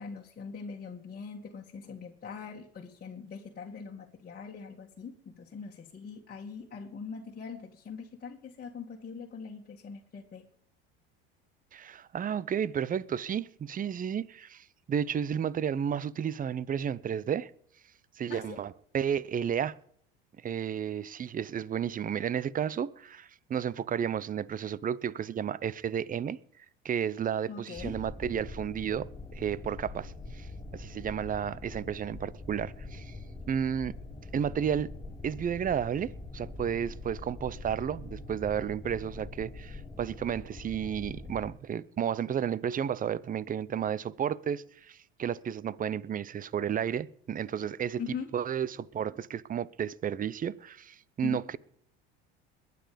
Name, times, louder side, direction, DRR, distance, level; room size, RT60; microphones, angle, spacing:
voice 1, 0.0-10.4 18.3-18.6 27.5-28.0 48.0-48.3 51.2-51.4, left 5 dB, 30° left, 2.0 m, -42 dB
voice 2, 11.7-17.5 18.2-19.7 20.4-26.4 26.8-33.2 33.5-33.9 34.3-34.9 35.2-48.0 48.3-51.6, right 8 dB, 30° right, 0.7 m, -32 dB
sound 1, 27.7-41.5, left 2 dB, 15° left, 3.1 m, -44 dB
21.0 x 9.4 x 5.2 m
hypercardioid pair, 85°, 30 cm